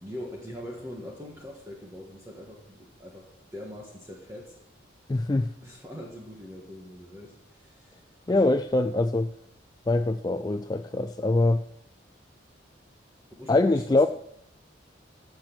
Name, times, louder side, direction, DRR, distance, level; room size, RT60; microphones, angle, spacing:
voice 1, 0.0-4.5 5.6-8.0 8.3-8.6 13.4-14.1, left 1 dB, 15° right, -2 dB, 1.6 m, -42 dB
voice 2, 5.1-5.5 8.3-9.3 9.9-11.6 13.5-14.1, left 2 dB, 20° left, 8 dB, 0.3 m, -23 dB
15.5 x 6.0 x 6.2 m, 0.76 s
head